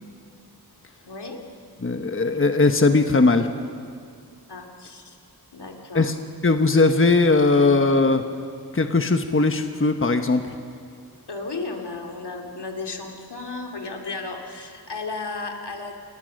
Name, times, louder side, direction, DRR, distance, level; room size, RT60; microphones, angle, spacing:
voice 1, 1.1-1.4 4.5-5.2 5.5-6.1 11.3-15.9, left 3 dB, 85° left, 2 dB, 2.4 m, -34 dB
voice 2, 1.8-3.5 5.9-6.1 6.4-8.2 8.7-10.4, left 3 dB, 30° left, 6 dB, 1.1 m, -19 dB
28.5 x 18.5 x 6.5 m, 2.2 s
wide cardioid pair, 70°, 39 cm